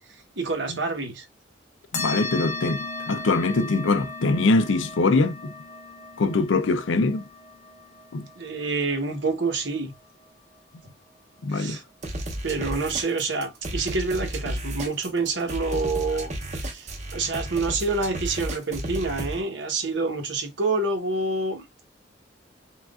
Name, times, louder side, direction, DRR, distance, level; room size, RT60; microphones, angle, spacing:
voice 1, 0.4-1.2 8.4-9.9 11.5-11.8 12.4-21.8, right 3 dB, 75° right, 1.1 m, -27 dB
voice 2, 1.9-5.5 6.2-7.3 8.1-8.3 11.4-11.8, left 3 dB, 80° left, 0.5 m, -23 dB
sound 1, 1.9-10.9, left 3 dB, 40° left, 0.8 m, -37 dB
sound 2, 12.0-19.4, right 1 dB, 40° right, 0.8 m, -32 dB
5.6 x 2.5 x 2.4 m
head